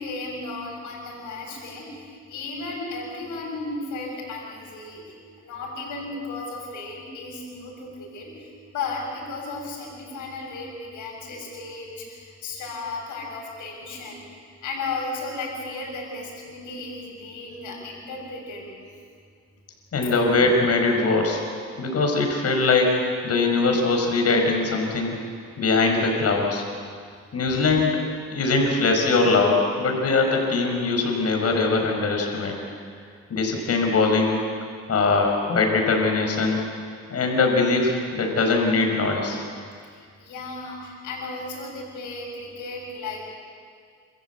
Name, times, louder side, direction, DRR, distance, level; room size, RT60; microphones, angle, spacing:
voice 1, 0.0-2.0 2.3-5.1 5.4-8.4 8.6-14.2 14.6-18.6 39.8-43.3, left 3 dB, 85° left, -2 dB, 7.2 m, -34 dB
voice 2, 19.9-21.4 21.8-23.0 23.2-25.1 25.6-26.6 27.3-28.0 28.3-32.5 33.3-34.4 34.9-36.6 37.1-39.4, left 3 dB, 55° left, 2 dB, 5.4 m, -21 dB
27.5 x 14.5 x 8.4 m, 2.1 s
cardioid pair, 90°, 30 cm